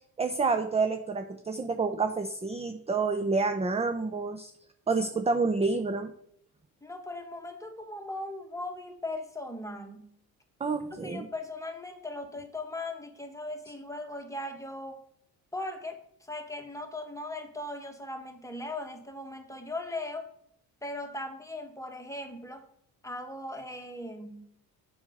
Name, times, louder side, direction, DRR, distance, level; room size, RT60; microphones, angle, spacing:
voice 1, 0.2-4.5 4.9-6.1 10.6-11.3, right 4 dB, 15° right, 8 dB, 0.6 m, -28 dB
voice 2, 6.8-10.1 11.0-15.0 15.5-20.3 20.8-22.6 23.0-24.4, left 2 dB, 5° left, 4 dB, 1.5 m, -38 dB
7.0 x 5.7 x 5.2 m, 0.68 s
supercardioid pair, 65°, 42 cm